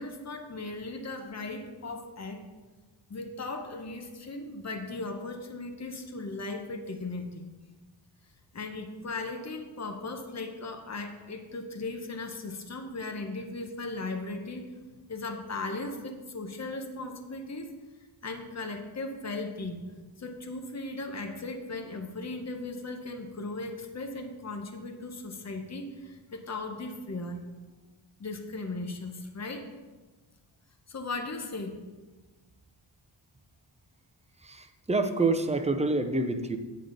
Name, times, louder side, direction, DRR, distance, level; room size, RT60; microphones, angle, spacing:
voice 1, 0.0-2.4 3.1-7.5 8.5-14.7 15.1-17.7 18.2-19.9 20.2-27.4 28.2-29.7 30.9-31.8, left 2 dB, 35° left, 4 dB, 0.9 m, -37 dB
voice 2, 34.4-36.6, right 3 dB, 15° right, 7 dB, 0.5 m, -27 dB
8.1 x 7.5 x 3.9 m, 1.3 s
wide cardioid pair, 120°, 49 cm